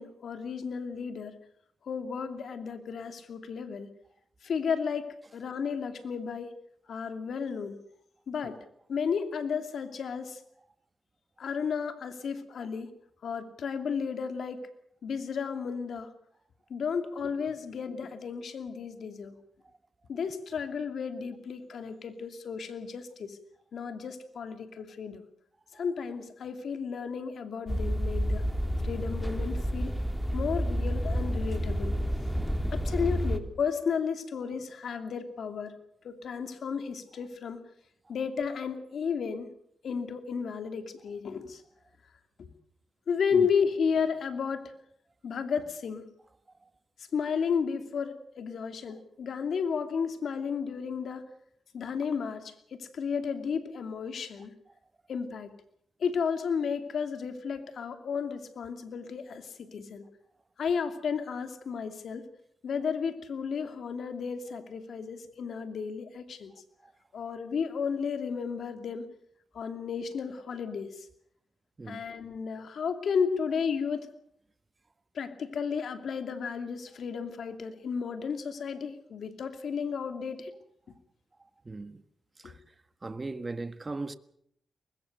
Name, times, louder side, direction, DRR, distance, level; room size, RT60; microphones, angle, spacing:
voice 1, 0.0-1.4 1.9-3.9 4.4-6.5 6.9-7.8 8.3-8.6 8.9-10.4 11.4-12.9 13.2-14.6 15.0-16.1 16.7-19.4 20.1-23.4 23.7-25.2 25.7-28.4 28.8-30.0 30.3-32.0 32.7-35.7 36.0-37.6 38.1-39.5 39.8-41.6 42.4-42.5 43.1-44.7 45.2-46.1 47.1-51.2 51.7-54.6 55.1-55.5 56.0-60.0 60.6-62.3 62.6-66.5 67.1-69.1 69.5-71.1 71.9-74.1 75.1-80.5 82.4-82.5, left 6 dB, 75° left, 2.7 m, -33 dB
sound 1, 27.7-33.4, equal, 5° left, 3.1 m, -29 dB
voice 2, 81.6-82.0 82.4-82.5 83.0-84.1, right 3 dB, 35° right, 1.5 m, -38 dB
23.5 x 21.0 x 6.7 m
cardioid pair, 60°, 0 cm